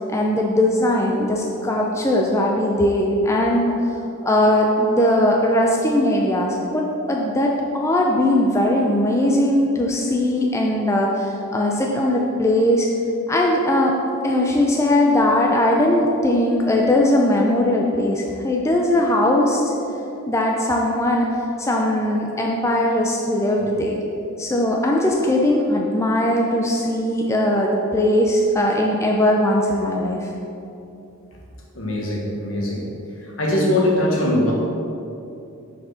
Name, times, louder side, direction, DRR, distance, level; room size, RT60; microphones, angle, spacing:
voice 1, 0.1-3.7 4.2-12.9 13.3-13.9 14.2-19.7 20.3-21.3 21.6-24.0 24.4-30.3, left 1 dB, 15° left, -1 dB, 0.4 m, -19 dB
voice 2, 31.7-32.9 33.2-34.5, left 1 dB, 70° left, -2 dB, 1.4 m, -21 dB
6.3 x 4.5 x 5.7 m, 2.8 s
head